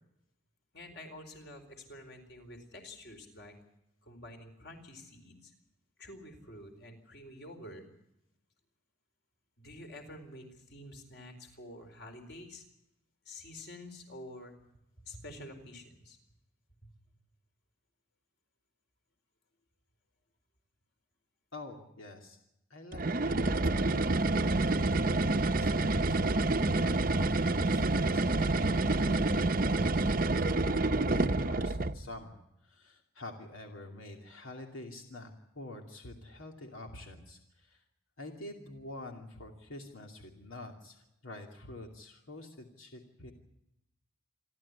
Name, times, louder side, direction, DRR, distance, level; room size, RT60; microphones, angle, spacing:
voice 1, 0.7-3.6 4.0-5.5 6.0-7.8 9.6-12.6 13.2-14.5 15.0-16.2 16.8-16.9, left 1 dB, 55° left, 5 dB, 4.3 m, -48 dB
voice 2, 21.5-22.4 22.7-24.4 25.6-37.8 38.2-43.3, left 2 dB, 85° left, 3 dB, 2.6 m, -47 dB
sound 1, 22.9-32.0, right 2 dB, 45° right, 0.8 m, -28 dB
28.0 x 12.5 x 9.7 m, 0.86 s
head